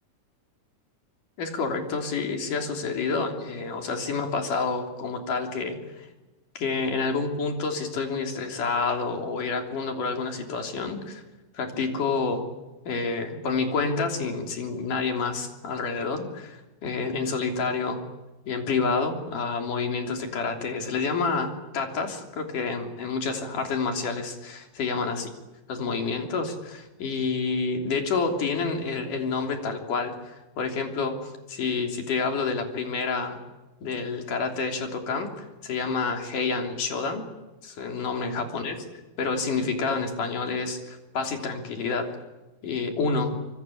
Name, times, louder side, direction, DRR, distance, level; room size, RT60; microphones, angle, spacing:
voice 1, 1.4-6.1 6.6-11.2 11.5-12.4 12.9-18.0 18.5-25.3 25.7-33.4 33.8-37.2 37.6-38.8 39.2-42.1 42.6-43.3, left 4 dB, 75° left, 4 dB, 4.8 m, -28 dB
26.0 x 24.0 x 8.6 m, 1.1 s
omnidirectional pair, 3.7 m